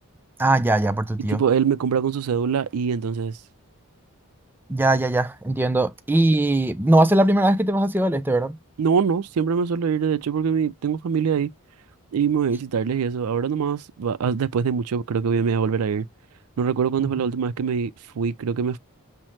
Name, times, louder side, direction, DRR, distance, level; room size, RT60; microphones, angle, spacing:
voice 1, 0.4-1.4 4.7-8.6 17.0-17.2, right 1 dB, 10° right, 0.3 m, -20 dB
voice 2, 1.3-3.4 8.8-11.5 12.1-16.0 16.6-17.9 18.2-18.8, right 6 dB, 80° right, 0.4 m, -23 dB
5.6 x 2.1 x 3.1 m
head